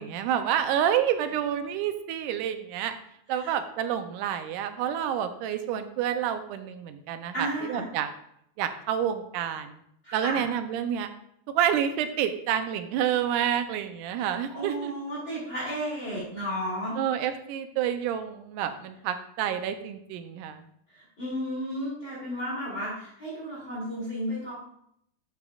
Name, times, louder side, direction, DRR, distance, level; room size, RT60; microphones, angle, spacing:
voice 1, 0.0-2.9 3.3-8.1 8.6-9.7 10.1-11.1 11.6-14.9 17.0-20.7, right 9 dB, 80° right, 9 dB, 2.0 m, -28 dB
voice 2, 7.3-7.8 10.0-10.4 14.2-16.9 20.9-24.5, equal, 30° left, -8 dB, 2.8 m, -33 dB
11.0 x 7.0 x 2.4 m, 0.73 s
omnidirectional pair, 4.0 m